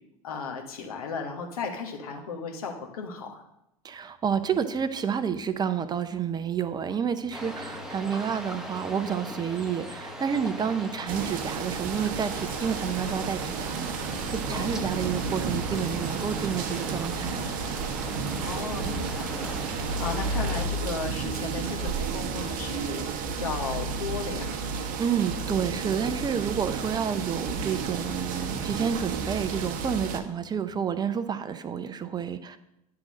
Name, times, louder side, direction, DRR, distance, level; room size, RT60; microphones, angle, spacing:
voice 1, 0.2-3.4 14.5-14.7 18.4-19.6 20.0-24.6, left 5 dB, 70° left, 2 dB, 1.4 m, -35 dB
voice 2, 3.8-17.5 25.0-32.6, right 7 dB, 20° right, 11 dB, 0.6 m, -30 dB
sound 1, 7.3-20.7, equal, 5° right, 1.0 m, -40 dB
sound 2, 11.1-30.2, right 5 dB, 45° right, 1.0 m, -32 dB
9.6 x 3.8 x 6.3 m, 0.84 s
figure-of-eight pair, 80°, 19 cm